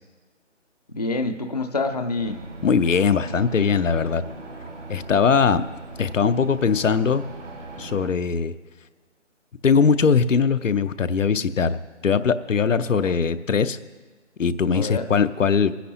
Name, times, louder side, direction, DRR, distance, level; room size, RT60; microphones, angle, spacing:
voice 1, 0.9-2.4 13.0-13.2 14.7-15.1, left 3 dB, 35° left, 7 dB, 0.4 m, -27 dB
sound 1, 2.2-8.1, right 2 dB, 75° right, 1.8 m, -39 dB
voice 2, 2.6-4.2 4.9-5.7 6.0-7.3 7.8-8.5 9.6-13.8 14.4-15.8, left 6 dB, 90° left, 12 dB, 0.7 m, -20 dB
22.0 x 10.0 x 2.8 m, 1.3 s
figure-of-eight pair, 155°, 37 cm